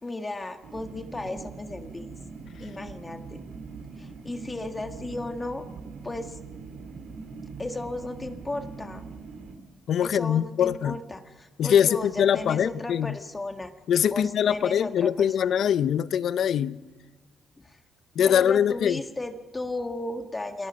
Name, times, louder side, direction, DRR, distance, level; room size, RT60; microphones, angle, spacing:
voice 1, 0.0-2.1 2.6-3.4 4.0-5.7 6.0-6.4 7.6-9.0 10.0-13.7 14.1-15.7 17.6-17.8 18.2-20.7, left 2 dB, 20° left, 1.6 m, -35 dB
sound 1, 0.6-9.6, right 4 dB, 70° right, 2.9 m, -42 dB
voice 2, 9.9-11.0 11.6-13.2 13.9-16.8 18.2-19.0, left 9 dB, 70° left, 0.6 m, -23 dB
29.0 x 18.5 x 5.2 m
cardioid pair, 90°, 0 cm